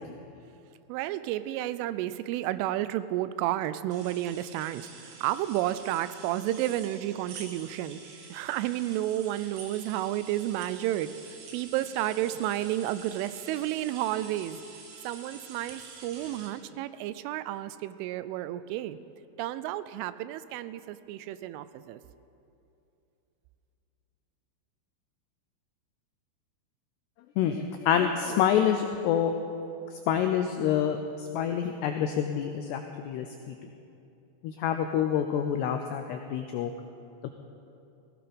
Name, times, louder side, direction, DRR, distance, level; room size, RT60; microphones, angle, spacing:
voice 1, 0.9-8.0 8.3-11.1 11.5-14.6 15.0-19.0 19.4-22.0, right 13 dB, 85° right, 14 dB, 3.1 m, -31 dB
sound 1, 3.9-16.5, right 4 dB, 70° right, 4.1 m, -47 dB
voice 2, 27.4-29.4 30.1-33.3 34.4-36.7 37.2-37.3, left 9 dB, 90° left, 6 dB, 2.4 m, -27 dB
17.5 x 16.0 x 5.1 m, 2.8 s
omnidirectional pair, 5.6 m